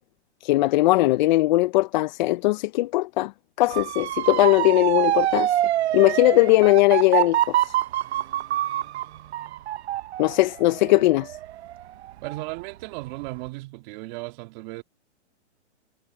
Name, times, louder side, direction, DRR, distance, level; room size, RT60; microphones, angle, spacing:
voice 1, 0.4-3.3 3.6-5.5 5.9-7.7 10.2-11.4, left 19 dB, 40° left, 0.6 m, -19 dB
Motor vehicle (road) / Siren, 3.7-12.6 13.0-13.5, right 13 dB, 65° right, 0.9 m, -26 dB
voice 2, 12.2-14.8, right 23 dB, 40° right, 2.1 m, -35 dB
hypercardioid pair, 140°, 35 cm